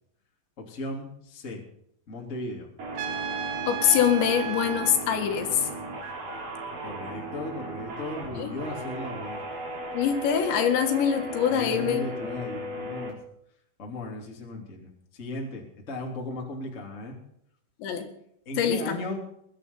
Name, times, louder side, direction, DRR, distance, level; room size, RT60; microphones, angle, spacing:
voice 1, 0.6-1.6 2.1-2.7 6.8-9.4 11.5-13.2 13.8-17.1 18.4-19.2, left 2 dB, 20° left, 1 dB, 2.6 m, -36 dB
sound 1, 2.8-13.1, right 1 dB, 45° right, 5.3 m, -36 dB
Trumpet, 3.0-5.0, right 8 dB, 70° right, 2.5 m, -34 dB
voice 2, 3.7-5.7 8.4-8.5 9.9-12.1 17.8-18.1 18.6-19.0, left 8 dB, 70° left, 5 dB, 3.9 m, -24 dB
21.0 x 10.5 x 5.5 m, 0.72 s
omnidirectional pair, 5.5 m